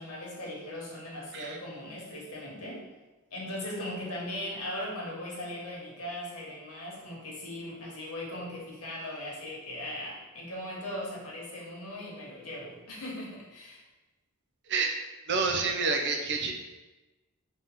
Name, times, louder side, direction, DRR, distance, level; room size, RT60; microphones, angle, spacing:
voice 1, 0.0-2.9 3.3-13.8, left 1 dB, 85° left, -4 dB, 1.2 m, -39 dB
voice 2, 14.7-15.0 15.3-16.5, right 4 dB, 50° right, 3 dB, 0.5 m, -28 dB
3.6 x 2.7 x 3.5 m, 1.1 s
head